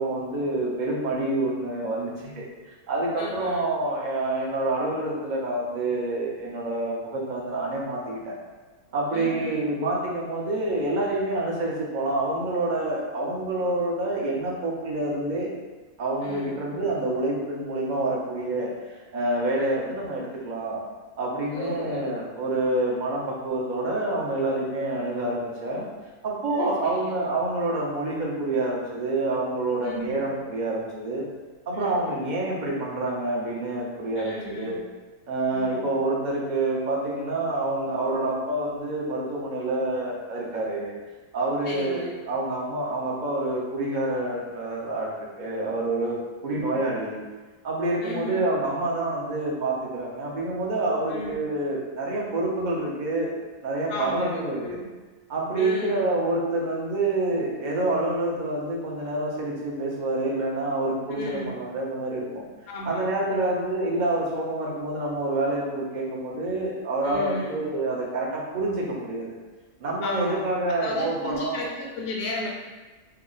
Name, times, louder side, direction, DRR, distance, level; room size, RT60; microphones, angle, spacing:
voice 1, 0.0-2.4 2.9-8.3 8.9-15.5 16.0-18.7 19.1-20.8 21.2-25.8 26.2-31.2 31.7-34.7 35.3-40.9 41.3-45.1 45.4-46.2 46.4-47.2 47.6-53.3 53.6-54.6 55.3-62.4 62.8-69.4 69.8-71.6, right 2 dB, 60° right, -4 dB, 0.4 m, -27 dB
voice 2, 3.2-3.7 9.1-9.7 16.2-16.6 21.5-22.1 26.5-27.2 29.8-30.2 31.7-32.2 34.2-34.8 35.5-35.8 41.7-42.1 46.5-46.6 48.0-48.4 51.1-51.4 53.9-54.8 55.6-56.1 61.1-61.5 62.7-63.5 67.0-67.6 70.0-70.5 70.8-72.5, left 1 dB, 55° left, -2 dB, 0.7 m, -34 dB
3.3 x 2.0 x 3.8 m, 1.3 s
omnidirectional pair, 1.6 m